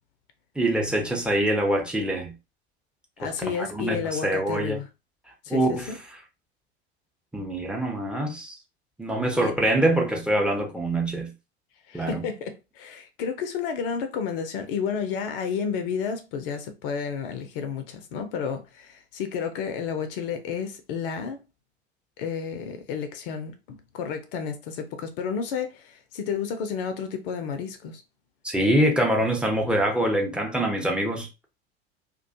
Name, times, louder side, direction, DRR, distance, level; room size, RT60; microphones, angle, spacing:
voice 1, 0.6-2.3 3.2-3.3 3.6-4.8 5.5-5.9 7.3-8.6 9.0-11.3 11.9-12.2 28.4-31.3, right 1 dB, 5° right, 0.5 m, -24 dB
voice 2, 3.2-4.9 5.4-6.0 9.4-9.5 11.9-21.4 22.2-28.0, left 6 dB, 55° left, 0.5 m, -31 dB
2.3 x 2.2 x 2.6 m
figure-of-eight pair, 80°, 33 cm